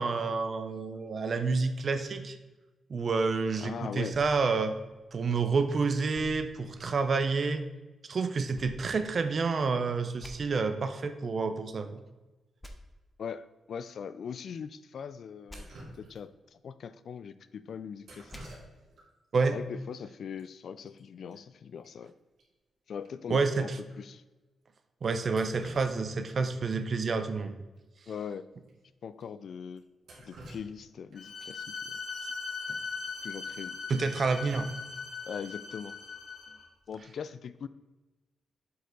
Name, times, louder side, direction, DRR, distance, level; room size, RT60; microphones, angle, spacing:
voice 1, 0.0-2.4 2.9-4.8 5.1-7.6 8.1-12.0 19.3-19.5 23.3-23.8 25.0-27.5 32.7-32.8 33.9-34.7, right 4 dB, 40° right, 9 dB, 0.6 m, -29 dB
voice 2, 3.6-4.2 13.2-15.7 16.0-18.3 19.5-22.1 22.9-23.7 24.0-24.2 28.1-28.5 29.0-29.8 30.2-31.9 32.2-32.3 33.2-33.8 35.3-36.0 36.9-37.7, left 7 dB, 55° left, 14 dB, 0.3 m, -41 dB
sound 1, 5.0-5.5 6.1-7.4 8.5-9.7 10.2-10.3 12.6-12.7 15.5-15.6 18.3-18.4, equal, 10° left, 0.7 m, -50 dB
Drip, 15.5-16.5 18.0-19.1 19.4-19.5 20.4-20.5 20.7-21.0 21.3-21.4 21.8-21.9 22.4-22.5 23.0-23.1 23.8-24.0 25.1-26.3 26.7-26.8 28.1-28.2 28.6-28.7 29.2-29.3 29.8-31.4 33.4-33.7 34.1-34.5, right 1 dB, 65° right, 2.5 m, -50 dB
Bowed string instrument, 31.2-36.7, left 5 dB, 80° left, 1.7 m, -39 dB
7.8 x 5.3 x 3.9 m, 1.2 s
wide cardioid pair, 175°, 0 cm